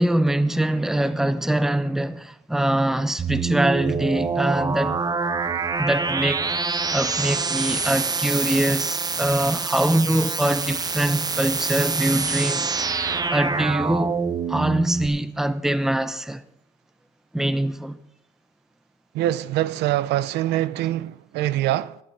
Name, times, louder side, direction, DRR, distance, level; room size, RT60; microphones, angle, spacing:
voice 1, 0.0-5.0 5.8-14.2 14.5-16.4 17.3-18.0, right 1 dB, ahead, 0.8 m, -23 dB
sound 1, 3.2-15.1, right 4 dB, 25° right, 1.0 m, -26 dB
voice 2, 19.1-22.0, right 14 dB, 85° right, 0.6 m, -24 dB
14.5 x 12.0 x 4.0 m
cardioid pair, 110°, 17 cm